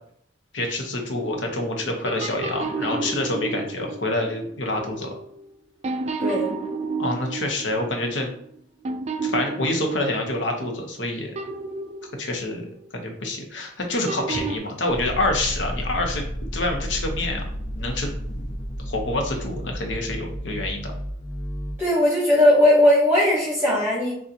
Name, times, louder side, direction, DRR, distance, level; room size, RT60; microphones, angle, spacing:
voice 1, 0.5-5.1 7.0-8.3 9.2-11.3 12.2-12.6 12.9-16.2 16.5-17.4 17.7-18.5 18.9-20.9, left 2 dB, 90° left, 2 dB, 1.0 m, -27 dB
sound 1, 1.1-5.5 5.8-8.6 8.8-10.9 11.4-12.9 14.1-14.6, right 4 dB, 35° right, 0.4 m, -32 dB
voice 2, 6.2-6.5 21.8-24.1, left 1 dB, 15° right, -4 dB, 1.0 m, -18 dB
sound 2, 14.9-21.7, equal, 50° left, 1.3 m, -32 dB
6.5 x 2.5 x 2.8 m, 0.67 s
head